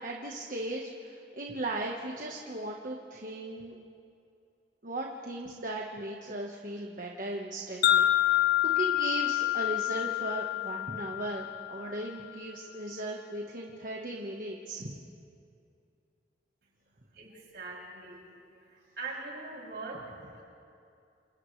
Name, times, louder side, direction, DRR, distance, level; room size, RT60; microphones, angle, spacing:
voice 1, 0.0-3.8 4.8-15.0, right 2 dB, 50° right, 0 dB, 1.4 m, -37 dB
Wind chime, 7.8-12.1, left 13 dB, 60° left, 1.0 m, -28 dB
voice 2, 17.1-18.2 18.6-20.4, right 3 dB, 65° right, -4 dB, 6.9 m, -42 dB
28.5 x 28.0 x 3.3 m, 2.5 s
head